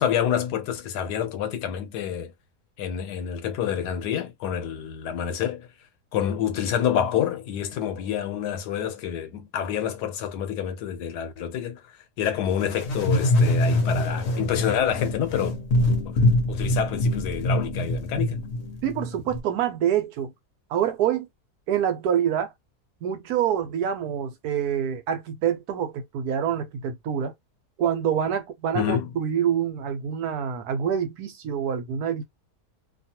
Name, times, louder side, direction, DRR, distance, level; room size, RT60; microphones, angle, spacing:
voice 1, 0.0-2.3 2.8-5.7 6.1-11.8 12.2-15.5 16.0-16.2 16.5-18.4 28.7-29.1, left 9 dB, 90° left, 1.3 m, -27 dB
sound 1, 12.6-19.4, left 1 dB, 55° left, 0.8 m, -24 dB
voice 2, 18.8-20.3 20.7-21.3 21.7-22.5 23.0-27.3 27.8-32.2, right 9 dB, 75° right, 1.2 m, -26 dB
2.8 x 2.3 x 2.8 m
omnidirectional pair, 1.7 m